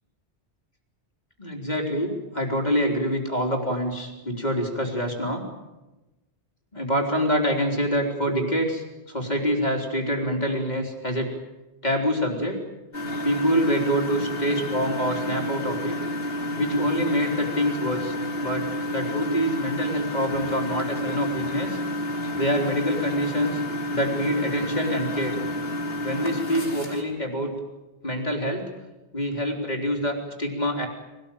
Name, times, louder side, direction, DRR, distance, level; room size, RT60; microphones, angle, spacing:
voice 1, 1.4-5.4 6.7-11.3 11.8-12.6 13.2-16.0 16.6-18.7 18.9-21.8 22.4-23.6 23.9-25.3 26.0-27.5 28.0-28.7 29.1-30.9, equal, 40° left, 2 dB, 4.0 m, -26 dB
Engine, 12.9-27.0, left 1 dB, 65° left, 3.9 m, -30 dB
24.5 x 18.5 x 9.2 m, 1.1 s
omnidirectional pair, 1.1 m